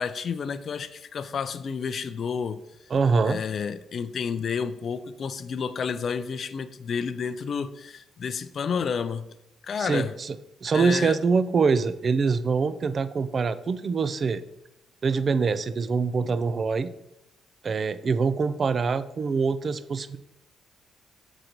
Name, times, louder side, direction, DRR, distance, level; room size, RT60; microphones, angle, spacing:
voice 1, 0.0-2.6 3.2-9.2 9.6-10.1 10.7-11.2, left 6 dB, 50° left, 13 dB, 0.4 m, -30 dB
voice 2, 2.9-3.4 9.8-10.4 10.6-14.4 15.0-16.9 17.6-20.2, right 5 dB, 45° right, 14 dB, 0.4 m, -24 dB
6.4 x 3.9 x 4.4 m, 0.87 s
cardioid pair, 90°, 0 cm